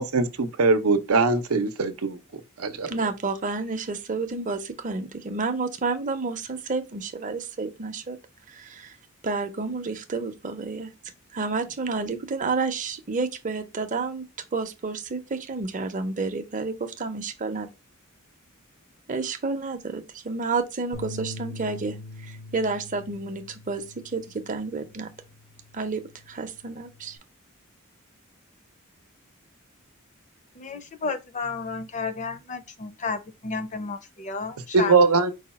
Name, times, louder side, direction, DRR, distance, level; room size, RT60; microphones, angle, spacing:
voice 1, 0.0-2.2 2.6-2.9 34.7-35.3, right 4 dB, 90° right, 0.7 m, -21 dB
voice 2, 2.9-8.2 8.5-9.0 9.2-10.9 11.3-14.3 14.5-17.7 19.1-23.8 24.1-25.1 25.7-26.0 26.3-27.2, right 4 dB, 40° right, 0.6 m, -30 dB
sound 1, 20.9-27.2, left 2 dB, 85° left, 1.6 m, -43 dB
voice 3, 30.5-35.1, left 4 dB, 35° left, 0.5 m, -32 dB
4.8 x 2.3 x 4.1 m
head